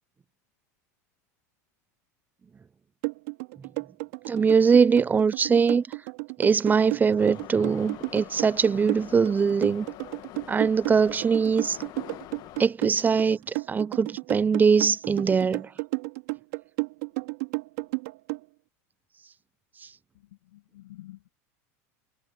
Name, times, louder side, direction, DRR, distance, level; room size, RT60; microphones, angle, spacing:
sound 1, 3.0-18.4, right 28 dB, 70° right, 2.4 m, -32 dB
voice 1, 4.3-5.8 6.4-9.9 10.5-11.8 12.6-15.7, right 5 dB, 20° right, 0.7 m, -22 dB
Subway metro underground, 7.2-12.7, left 16 dB, 55° left, 1.6 m, -44 dB
voice 2, 20.1-21.3, left 16 dB, 85° left, 2.2 m, -49 dB
hypercardioid pair, 100°, 8 cm